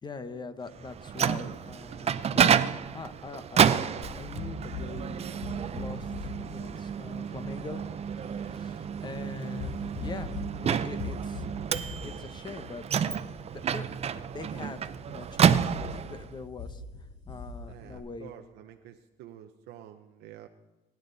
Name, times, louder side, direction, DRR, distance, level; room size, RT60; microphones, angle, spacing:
voice 1, 0.0-13.2 13.5-14.8 15.0-16.8 17.2-18.3, left 4 dB, 25° left, 10 dB, 1.2 m, -43 dB
Microwave oven, 0.8-16.3, right 8 dB, 40° right, 0.6 m, -29 dB
sound 1, 4.0-18.0, left 4 dB, 45° left, 6.0 m, -43 dB
voice 2, 17.7-20.5, right 11 dB, 85° right, 5 dB, 0.8 m, -49 dB
25.0 x 10.5 x 4.1 m, 1.2 s
cardioid pair, 110°, 17 cm